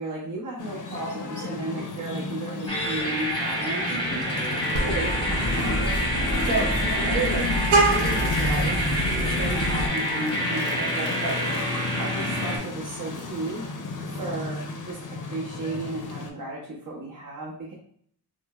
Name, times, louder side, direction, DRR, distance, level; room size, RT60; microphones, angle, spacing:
voice 1, 0.0-3.9 4.8-7.5 7.8-8.9 9.2-11.4 12.0-13.6 14.2-14.6 14.8-17.7, right 2 dB, 55° right, -5 dB, 0.8 m, -33 dB
sound 1, 0.6-16.3, left 3 dB, 50° left, 0.5 m, -33 dB
sound 2, 2.7-12.6, equal, 15° left, 0.7 m, -28 dB
voice 2, 3.9-4.4 4.7-4.9 9.3-9.7 14.1-14.4, right 2 dB, 25° right, -3 dB, 0.9 m, -40 dB
Vehicle horn car horn honking, 4.7-9.9, right 2 dB, 85° right, 0.8 m, -26 dB
4.8 x 2.0 x 2.3 m, 0.62 s
wide cardioid pair, 155°, 39 cm